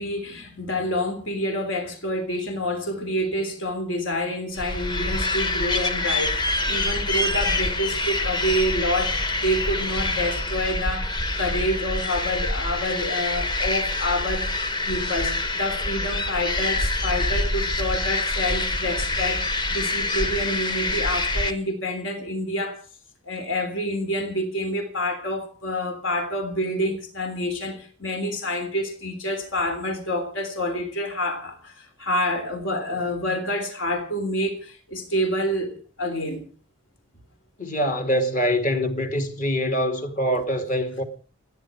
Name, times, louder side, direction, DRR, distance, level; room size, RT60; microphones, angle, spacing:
voice 1, 0.0-14.5 14.8-22.8 23.3-36.5, left 1 dB, 65° left, 3.4 m, -28 dB
sound 1, 4.6-21.5, left 2 dB, 20° left, 1.2 m, -26 dB
voice 2, 37.6-41.0, equal, 40° left, 2.5 m, -24 dB
29.5 x 10.0 x 4.8 m
head